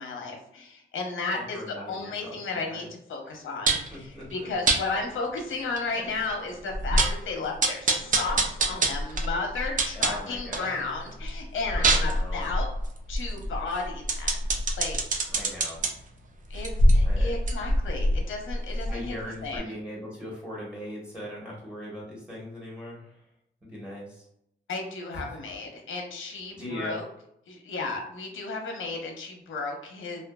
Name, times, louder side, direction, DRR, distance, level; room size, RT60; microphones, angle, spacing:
voice 1, 0.0-12.7 13.1-14.5 14.8-15.0 16.5-19.2 19.4-19.8 24.7-27.0 27.5-30.2, left 3 dB, 80° left, 2 dB, 0.7 m, -34 dB
voice 2, 1.5-2.1 2.5-2.8 3.9-4.5 6.0-6.1 9.9-10.7 11.8-12.5 15.3-15.8 17.0-17.3 18.9-23.0 23.7-24.2 25.1-25.2 26.5-27.0, equal, 5° right, -5 dB, 1.2 m, -39 dB
sound 1, 3.7-3.9 4.7-4.8 5.4-5.5 5.8-5.9 6.3-6.4 6.7-7.2 7.6-10.7 11.1-15.9 16.5-19.2 19.5-19.6, right 1 dB, 40° right, 0.5 m, -25 dB
2.5 x 2.5 x 2.3 m, 0.77 s
cardioid pair, 95°, 20 cm